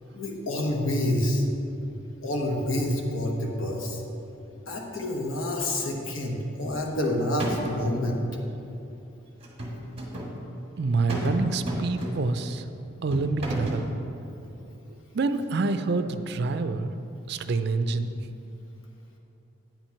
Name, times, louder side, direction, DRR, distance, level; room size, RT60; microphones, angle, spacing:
voice 1, 0.1-1.5 2.2-4.0 4.7-8.2, left 1 dB, 85° left, 1 dB, 1.1 m, -28 dB
sound 1, 6.7-7.1 7.4-7.9 9.4-10.3 11.1-11.4 11.7-12.4 13.1-13.9, right 1 dB, 30° right, 1.4 m, -33 dB
voice 2, 10.8-12.6 13.0-13.9 15.1-16.9 17.3-18.1, right 3 dB, 55° right, 10 dB, 0.4 m, -26 dB
8.8 x 6.0 x 5.7 m, 2.8 s
head